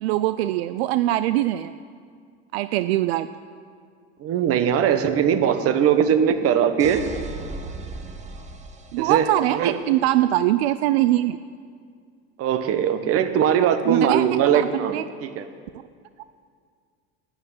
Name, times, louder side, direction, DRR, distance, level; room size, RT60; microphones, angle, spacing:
voice 1, 0.0-1.7 2.5-3.3 8.9-11.4 13.9-14.3 14.5-15.0, right 14 dB, 80° right, 13 dB, 0.5 m, -22 dB
voice 2, 4.2-7.0 9.0-9.8 12.4-14.9 15.2-15.5, right 8 dB, 50° right, 9 dB, 1.2 m, -20 dB
sound 1, 6.8-9.7, right 3 dB, 20° right, 1.3 m, -37 dB
11.0 x 8.9 x 9.6 m, 2.1 s
supercardioid pair, 100°, 31 cm